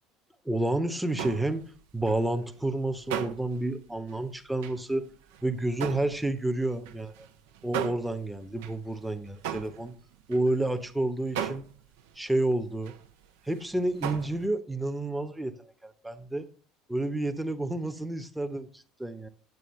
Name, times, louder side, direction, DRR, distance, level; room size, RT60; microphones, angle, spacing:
voice 1, 0.4-1.6 1.9-5.1 5.4-7.3 7.6-9.9 10.3-11.6 12.2-12.9 13.4-16.5 16.9-19.3, right 2 dB, 5° right, 1.0 m, -30 dB
sound 1, 1.1-10.9 11.3-13.3 13.5-14.5, right 9 dB, 65° right, 0.9 m, -38 dB
9.4 x 8.3 x 3.2 m
figure-of-eight pair, 65°, 0 cm